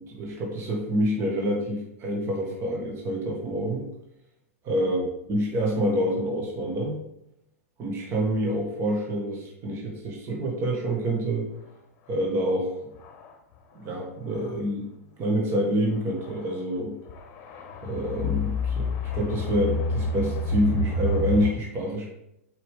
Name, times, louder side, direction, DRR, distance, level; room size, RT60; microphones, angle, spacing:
voice 1, 0.2-3.9 4.6-7.0 7.8-11.5 12.1-12.7 13.7-14.9 15.2-17.0 17.8-22.1, equal, 30° right, -2 dB, 1.7 m, -27 dB
sound 1, 12.2-12.3 13.0-13.3 14.3-14.4 16.2-16.5 17.1-21.5, left 2 dB, 35° left, 1.1 m, -28 dB
7.5 x 4.9 x 3.7 m, 0.83 s
figure-of-eight pair, 105°, 8 cm